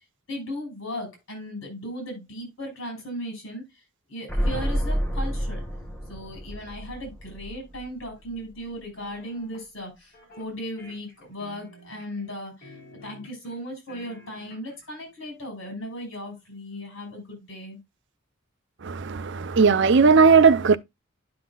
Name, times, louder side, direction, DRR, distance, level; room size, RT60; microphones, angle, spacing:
voice 1, 0.3-3.6 4.1-5.6 6.1-17.8, equal, 70° left, 6.3 m, -37 dB
sound 1, 4.3-8.0 8.3-8.4, equal, 5° left, 1.6 m, -29 dB
sound 2, 9.0-9.7 10.1-10.5 10.8-12.3 12.6-13.6 13.9-14.9, left 1 dB, 45° left, 4.1 m, -49 dB
voice 2, 18.8-20.8, right 5 dB, 60° right, 0.6 m, -17 dB
11.0 x 5.9 x 2.4 m
head